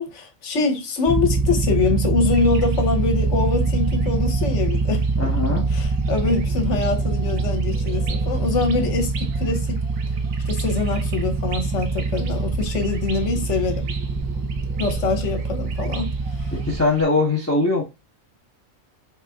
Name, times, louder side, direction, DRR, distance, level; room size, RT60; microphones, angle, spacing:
voice 1, 0.0-5.0 5.7-9.8 10.5-13.9 14.8-16.5, left 4 dB, 65° left, 1.2 m, -24 dB
sound 1, 1.1-16.8, right 3 dB, 25° right, 0.4 m, -24 dB
sound 2, 2.3-17.0, right 4 dB, 85° right, 1.2 m, -39 dB
voice 2, 5.2-5.7 16.5-17.8, left 3 dB, 15° left, 0.9 m, -21 dB
4.0 x 3.6 x 3.5 m
omnidirectional pair, 1.4 m